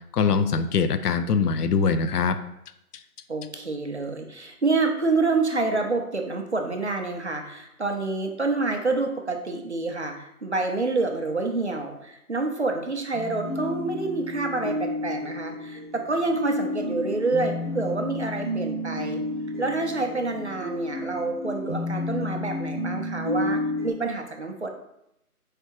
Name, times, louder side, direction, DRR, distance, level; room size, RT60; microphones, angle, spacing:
voice 1, 0.1-2.4, left 5 dB, 85° left, 10 dB, 0.5 m, -22 dB
voice 2, 3.3-19.2 19.6-24.7, right 3 dB, 50° right, 3 dB, 0.5 m, -27 dB
sound 1, 13.1-23.9, left 1 dB, 35° left, 0.6 m, -31 dB
4.6 x 3.3 x 2.9 m, 0.81 s
figure-of-eight pair, 175°, 45 cm